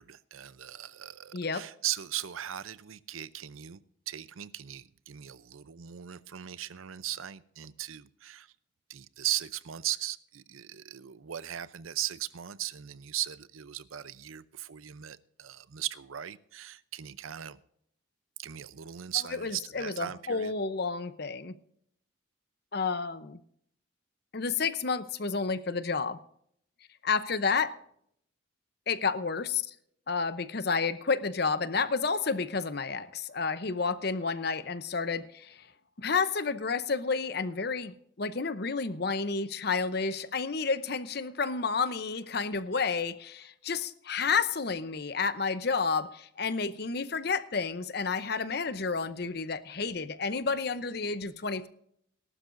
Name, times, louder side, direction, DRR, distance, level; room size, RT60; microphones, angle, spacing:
voice 1, 0.0-8.5 8.9-17.6 18.4-20.5, right 12 dB, 90° right, 0.6 m, -38 dB
voice 2, 1.3-1.7 19.4-21.6 22.7-23.4 24.3-26.2 27.0-27.8 28.9-29.7 30.1-35.7 36.0-51.7, left 5 dB, 50° left, 0.7 m, -30 dB
18.5 x 12.0 x 2.6 m
head